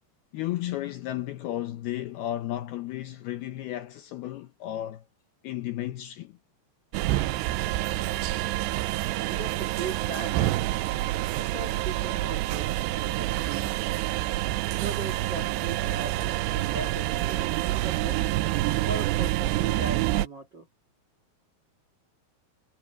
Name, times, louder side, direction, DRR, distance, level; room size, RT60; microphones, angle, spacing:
voice 1, 0.3-5.0 5.4-6.4, left 13 dB, 75° left, 2.4 m, -33 dB
sound 1, 6.9-20.3, right 16 dB, 80° right, 2.6 m, -27 dB
voice 2, 9.3-10.6 11.4-14.1 14.8-18.2 18.8-20.7, right 3 dB, 55° right, 1.2 m, -38 dB
omnidirectional pair, 5.4 m